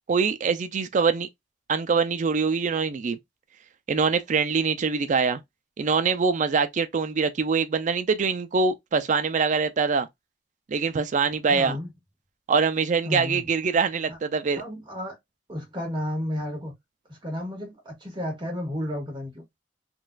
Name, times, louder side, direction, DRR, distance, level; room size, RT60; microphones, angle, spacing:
voice 1, 0.1-1.3 1.7-3.2 3.9-5.4 5.8-10.1 10.7-11.8 12.5-14.6, right 5 dB, 45° right, 0.4 m, -24 dB
voice 2, 11.5-11.9 13.0-13.5 14.1-14.2 14.6-15.2 15.5-16.7 17.1-19.4, left 1 dB, 25° right, 1.5 m, -32 dB
3.8 x 2.5 x 2.2 m
head